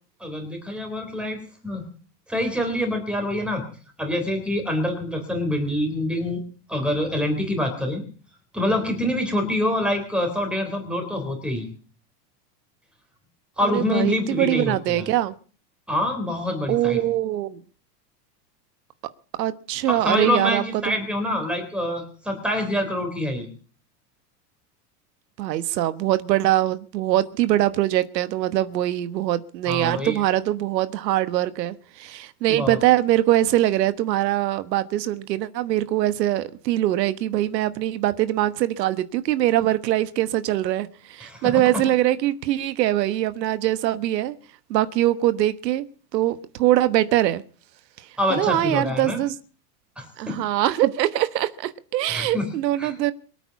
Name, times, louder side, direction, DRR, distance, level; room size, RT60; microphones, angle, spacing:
voice 1, 0.2-1.8 2.3-3.6 4.0-6.4 6.7-8.0 8.5-11.7 13.6-15.1 15.9-17.0 19.9-23.5 29.7-30.2 32.5-32.8 41.2-41.8 48.2-49.2 50.0-50.4 52.1-52.5 52.8-52.9, left 1 dB, ahead, 3.6 m, -26 dB
voice 2, 13.6-15.3 16.7-17.6 19.4-21.0 25.4-44.4 44.7-45.8 46.1-47.4 48.3-49.3 50.2-53.1, right 14 dB, 90° right, 1.3 m, -23 dB
23.0 x 9.1 x 7.0 m
supercardioid pair, 175°, 48 cm